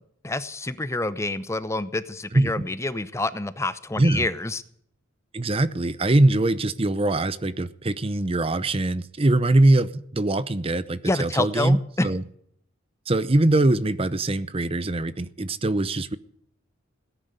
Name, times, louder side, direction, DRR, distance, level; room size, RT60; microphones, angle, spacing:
voice 1, 0.2-4.6 11.0-12.1, left 2 dB, 15° left, 14 dB, 0.7 m, -27 dB
voice 2, 5.3-11.8 12.0-12.2 13.1-16.2, right 2 dB, 30° right, 15 dB, 0.7 m, -22 dB
17.5 x 10.0 x 7.9 m, 0.66 s
head